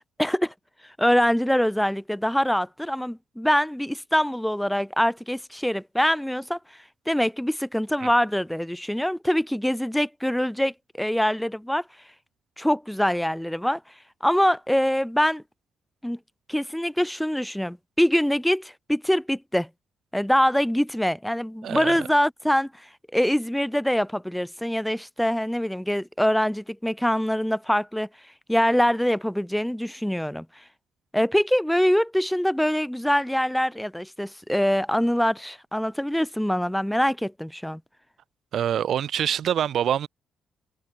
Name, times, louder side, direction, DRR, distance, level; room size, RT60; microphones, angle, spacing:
voice 1, 0.2-0.5 1.0-6.6 7.1-11.8 12.6-13.8 14.2-15.4 16.0-16.2 16.5-19.7 20.1-22.7 23.1-28.1 28.5-30.5 31.1-37.8, equal, 5° left, 1.1 m, -24 dB
voice 2, 21.6-22.1 38.5-40.1, right 9 dB, 65° right, 0.7 m, -25 dB
cardioid pair, 90°, 0 cm